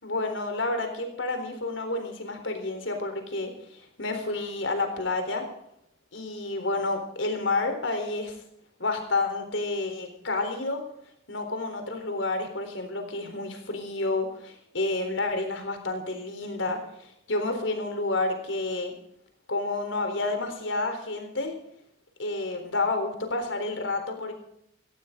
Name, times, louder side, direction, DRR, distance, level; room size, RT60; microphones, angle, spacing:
voice 1, 0.0-5.4 6.1-8.3 8.8-10.8 11.3-18.9 19.5-21.5 22.2-24.3, left 2 dB, 90° left, 6 dB, 4.0 m, -30 dB
18.0 x 15.5 x 3.9 m, 0.73 s
head